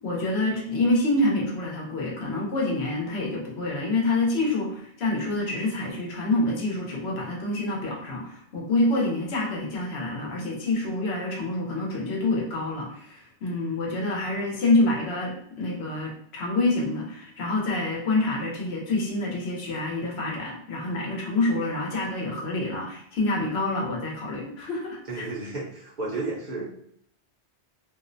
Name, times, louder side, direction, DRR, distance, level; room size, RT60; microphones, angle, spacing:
voice 1, 0.0-25.0, left 2 dB, 70° left, -1 dB, 0.9 m, -27 dB
voice 2, 25.1-26.7, right 3 dB, 55° right, -5 dB, 0.7 m, -32 dB
2.5 x 2.0 x 2.5 m, 0.70 s
omnidirectional pair, 1.1 m